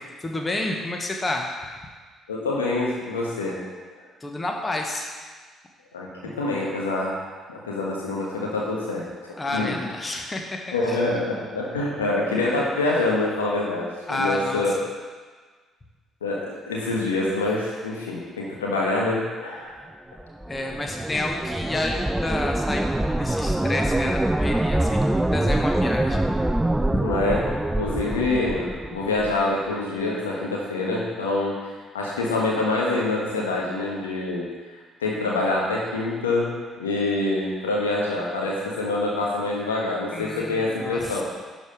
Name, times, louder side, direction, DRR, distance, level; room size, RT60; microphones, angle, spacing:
voice 1, 0.2-1.5 4.2-5.2 6.2-6.5 9.4-10.6 10.9-11.0 14.1-14.8 20.5-26.2 26.9-27.1 40.1-41.2, left 2 dB, 25° left, 2 dB, 1.4 m, -30 dB
voice 2, 2.3-3.6 5.9-7.2 7.5-9.8 10.7-14.7 16.2-19.8 27.0-27.4 27.8-34.5 35.0-41.2, left 2 dB, 80° left, -3 dB, 1.4 m, -26 dB
sound 1, 20.2-29.4, right 1 dB, 10° right, 0.4 m, -25 dB
11.5 x 5.1 x 5.2 m, 1.4 s
figure-of-eight pair, 45°, 0 cm